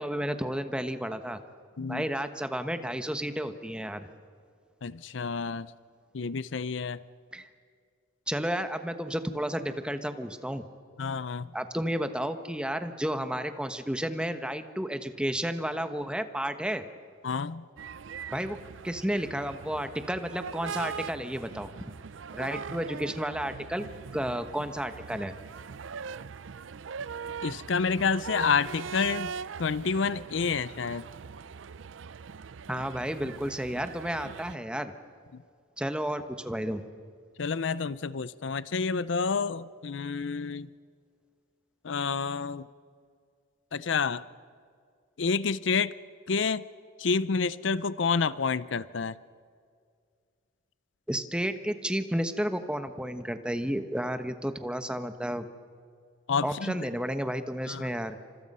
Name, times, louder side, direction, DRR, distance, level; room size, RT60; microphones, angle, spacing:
voice 1, 0.0-1.4 1.9-4.1 7.3-7.5 8.3-10.6 11.5-16.8 18.3-18.6 18.8-21.9 22.3-23.9 24.1-25.3 32.7-34.9 35.8-36.8 51.1-55.5 56.4-58.2, equal, 5° right, 9 dB, 1.2 m, -32 dB
voice 2, 4.8-5.7 6.1-7.0 11.0-11.5 17.2-17.7 27.4-29.3 29.6-31.1 35.3-35.4 37.4-40.7 41.8-42.7 43.7-44.2 45.2-45.9 46.3-46.6 47.0-49.2 56.3-56.8 57.7-57.9, left 5 dB, 75° left, 17 dB, 0.6 m, -29 dB
sound 1, 17.8-34.5, right 6 dB, 85° right, 0.5 m, -41 dB
29.0 x 26.5 x 5.5 m, 2.2 s
head